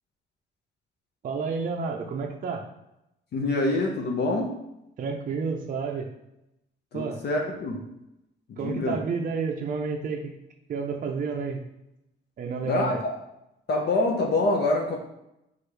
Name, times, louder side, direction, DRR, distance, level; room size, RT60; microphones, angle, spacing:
voice 1, 1.2-2.7 5.0-6.1 6.9-7.2 8.6-10.3 10.7-11.6 12.4-13.0, right 5 dB, 45° right, 2 dB, 0.5 m, -30 dB
voice 2, 3.3-4.6 6.9-7.8 8.5-9.0 12.6-12.9 13.7-15.0, left 2 dB, 55° left, 0 dB, 0.6 m, -25 dB
4.3 x 2.4 x 3.2 m, 0.86 s
cardioid pair, 90°, 20 cm